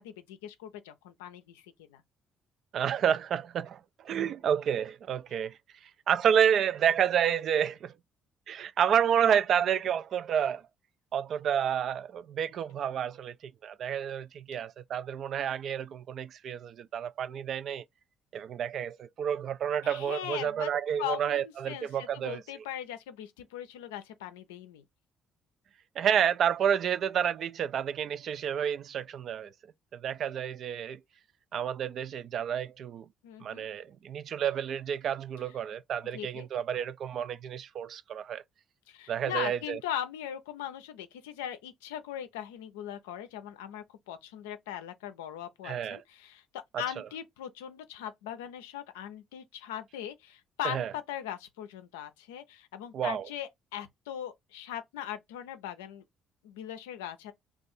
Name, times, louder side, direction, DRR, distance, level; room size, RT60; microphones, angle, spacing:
voice 1, 0.0-2.0 19.8-20.7 21.0-24.8 33.2-33.7 36.1-36.5 38.9-56.0 56.4-57.3, left 10 dB, 85° left, 0.4 m, -40 dB
voice 2, 2.7-5.6 6.1-7.9 8.5-10.6 11.1-13.3 13.6-17.8 18.3-22.4 26.0-29.5 29.9-31.0 31.5-33.1 33.4-38.4 39.1-39.8 45.6-46.0 50.6-50.9 52.9-53.3, right 8 dB, 60° right, 0.3 m, -29 dB
2.6 x 2.3 x 4.1 m
hypercardioid pair, 55°, 0 cm